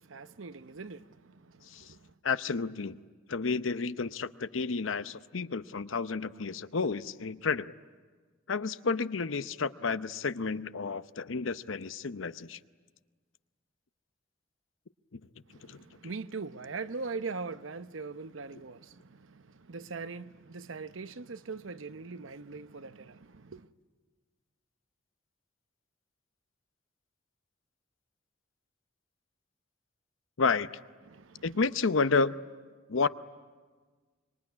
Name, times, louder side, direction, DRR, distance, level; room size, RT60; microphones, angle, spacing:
voice 1, 0.0-2.1 15.5-23.7 31.1-31.4, right 4 dB, 80° right, 0.8 m, -41 dB
voice 2, 2.2-3.0 3.3-7.7 8.5-12.6 15.7-15.8 30.4-30.7 31.4-32.3 32.9-33.1, left 4 dB, 80° left, 0.7 m, -30 dB
26.0 x 23.5 x 9.6 m
head